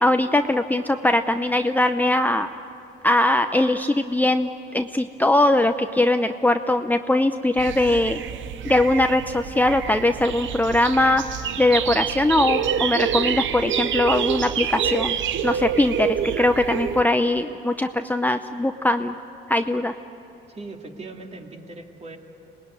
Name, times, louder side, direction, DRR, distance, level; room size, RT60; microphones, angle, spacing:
voice 1, 0.0-2.5 3.0-8.2 8.6-11.2 11.6-15.2 15.4-19.1 19.5-19.9, left 1 dB, 10° left, 7 dB, 0.6 m, -21 dB
sound 1, 7.6-17.0, right 9 dB, 70° right, 0.9 m, -27 dB
voice 2, 20.5-22.2, right 3 dB, 35° right, 3 dB, 2.5 m, -39 dB
26.0 x 19.5 x 9.6 m, 2.9 s
cardioid pair, 90°, 20 cm